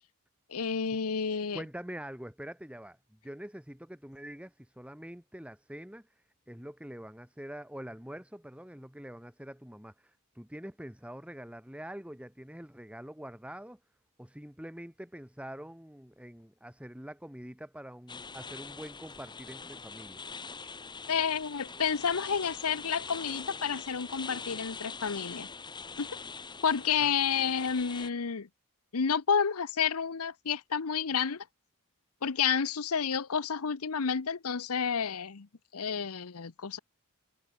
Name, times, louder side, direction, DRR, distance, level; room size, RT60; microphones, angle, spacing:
voice 1, 0.5-1.6 21.1-25.5 26.0-26.1 26.6-28.5 28.9-31.4 32.2-35.5 35.7-36.8, left 6 dB, 70° left, 0.8 m, -30 dB
voice 2, 1.5-6.1 6.5-13.8 14.2-20.2 27.0-27.1, equal, 5° right, 2.9 m, -45 dB
sound 1, 18.1-28.1, left 5 dB, 20° left, 1.1 m, -43 dB
head